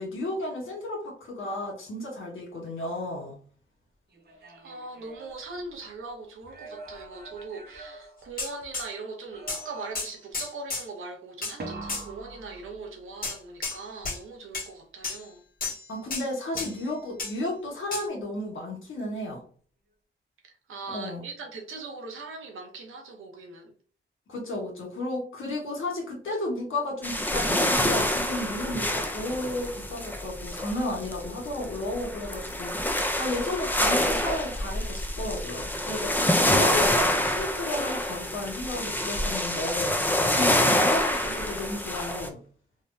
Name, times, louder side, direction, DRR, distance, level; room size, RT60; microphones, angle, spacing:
voice 1, 0.0-3.4 15.9-19.4 20.9-21.2 24.3-32.9 33.2-40.0 40.3-42.4, left 1 dB, 70° left, 1.4 m, -33 dB
sound 1, 4.1-6.0 6.4-8.8 9.3-10.3 11.6-13.2 16.5-17.2, right 2 dB, 50° right, 0.8 m, -44 dB
voice 2, 4.6-15.4 20.4-23.7, right 3 dB, 80° right, 0.8 m, -40 dB
sound 2, 8.4-8.9 9.5-9.6 9.9-10.9 11.4-11.5 11.9-12.0 13.2-13.8 14.0-14.2 14.5-14.7 15.0-15.2 15.6-15.9 16.1-16.3 16.6-16.8 17.2-17.4 17.9-18.0, left 3 dB, 45° left, 1.3 m, -32 dB
sound 3, 27.0-42.3, left 1 dB, 10° left, 0.6 m, -27 dB
3.4 x 2.2 x 2.7 m
cardioid pair, 55°, 21 cm